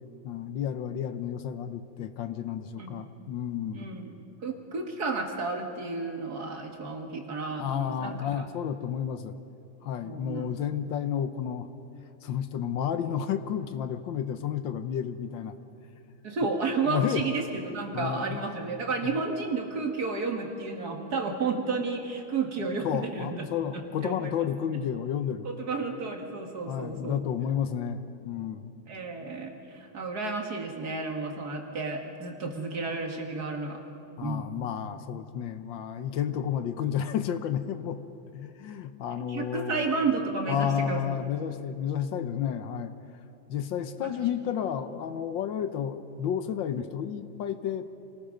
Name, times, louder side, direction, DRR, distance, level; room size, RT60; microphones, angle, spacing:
voice 1, 0.2-3.9 7.6-9.4 9.8-11.7 12.2-15.6 16.9-17.2 17.9-18.4 19.0-19.2 22.8-25.4 26.7-28.7 34.2-38.0 38.3-39.9 40.5-42.9 43.5-47.8, left 9 dB, 80° left, 10 dB, 1.6 m, -31 dB
voice 2, 3.7-4.1 4.4-8.4 10.0-10.6 16.2-24.5 25.4-27.2 28.9-33.8 34.2-34.5 39.3-41.1 44.0-44.1, right 4 dB, 55° right, 3 dB, 2.4 m, -32 dB
27.0 x 19.0 x 5.2 m, 2.8 s
omnidirectional pair, 2.1 m